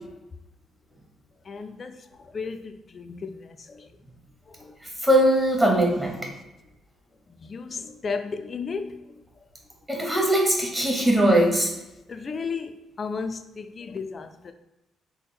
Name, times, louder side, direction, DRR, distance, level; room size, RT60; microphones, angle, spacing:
voice 1, 1.5-1.9 2.3-2.6 3.0-3.2 7.5-7.8 8.0-8.2 8.5-8.9 12.2-12.7 13.0-14.3, left 5 dB, 40° left, 0.3 m, -32 dB
voice 2, 5.0-6.2 9.9-11.7, right 1 dB, 10° right, 1.1 m, -20 dB
3.4 x 2.1 x 4.2 m
cardioid pair, 90°, 0 cm